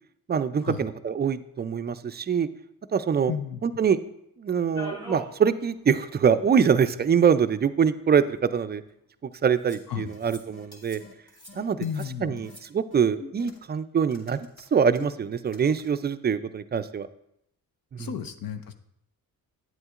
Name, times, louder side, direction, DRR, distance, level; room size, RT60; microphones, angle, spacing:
voice 1, 0.3-2.5 2.9-3.3 3.6-4.0 4.4-8.8 9.4-11.0 11.6-11.8 12.2-17.1 17.9-18.1, right 7 dB, 30° right, 12 dB, 0.4 m, -24 dB
voice 2, 3.3-3.6 9.9-10.1 11.8-12.4 18.0-18.7, left 8 dB, 70° left, 8 dB, 0.7 m, -33 dB
sound 1, 4.7-5.4 5.8-5.9 6.1-6.2 7.2-7.3 8.1-8.7 9.6-9.9 10.1-10.4 10.7-11.0 11.3-12.1 12.4-12.6, left 1 dB, 10° left, 1.9 m, -42 dB
sound 2, 10.0-10.2 10.5-10.7 11.0-11.1 11.5-11.6 12.0-12.1 12.4-12.6 12.9-13.8 14.1-15.9, left 2 dB, 45° left, 1.7 m, -45 dB
9.3 x 8.0 x 2.4 m, 0.75 s
cardioid pair, 80°, 36 cm